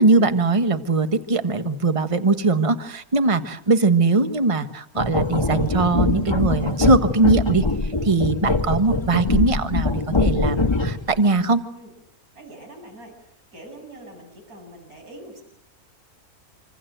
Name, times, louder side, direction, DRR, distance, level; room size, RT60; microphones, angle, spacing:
voice 1, 0.0-7.6 8.0-11.6, right 3 dB, 25° right, 9 dB, 1.3 m, -20 dB
sound 1, 4.9-11.1, left 3 dB, 20° left, 1.5 m, -22 dB
voice 2, 12.3-15.4, right 1 dB, 75° right, 3 dB, 8.3 m, -43 dB
27.5 x 25.0 x 7.9 m, 0.72 s
omnidirectional pair, 1.6 m